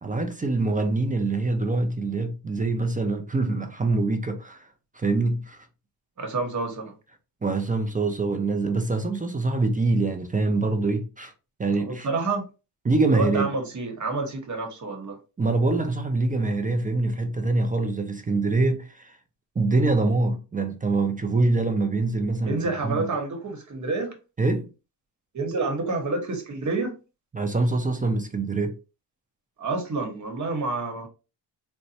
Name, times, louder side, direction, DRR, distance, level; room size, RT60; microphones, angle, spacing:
voice 1, 0.0-4.7 4.9-5.6 7.4-11.3 11.6-12.1 12.8-13.5 15.4-19.2 19.6-23.1 24.4-24.7 27.3-28.8, right 3 dB, 20° right, 0.4 m, -24 dB
voice 2, 6.2-6.9 11.8-12.5 13.1-15.2 22.4-24.2 25.3-27.0 29.6-31.1, right 3 dB, 40° right, 1.1 m, -28 dB
3.9 x 2.2 x 2.7 m
cardioid pair, 95°, 45 cm